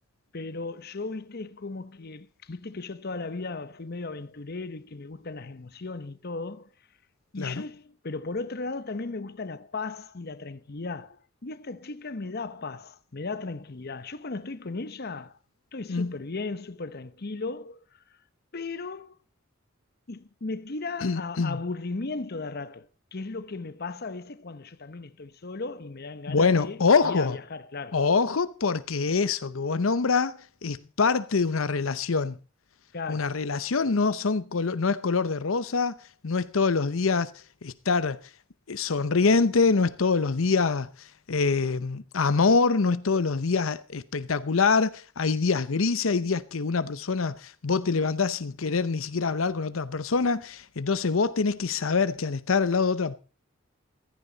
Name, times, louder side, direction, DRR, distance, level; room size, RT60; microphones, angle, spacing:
voice 1, 0.3-6.7 7.3-15.3 15.7-18.0 18.5-19.2 20.1-28.0 32.9-33.4, left 3 dB, 50° left, 0.9 m, -36 dB
voice 2, 21.0-21.6 26.3-27.4 27.9-32.4 33.1-36.0 36.2-38.3 38.7-53.2, left 4 dB, 85° left, 0.8 m, -25 dB
15.5 x 14.5 x 4.0 m
head